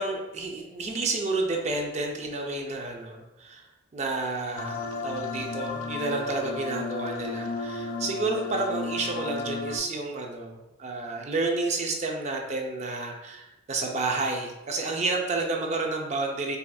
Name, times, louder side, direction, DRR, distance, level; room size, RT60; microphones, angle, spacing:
voice 1, 0.0-3.6 3.9-16.6, right 3 dB, 35° right, 1 dB, 0.4 m, -30 dB
sound 1, 4.6-9.8, left 3 dB, 75° left, 0.3 m, -33 dB
4.1 x 2.4 x 2.3 m, 1.0 s
head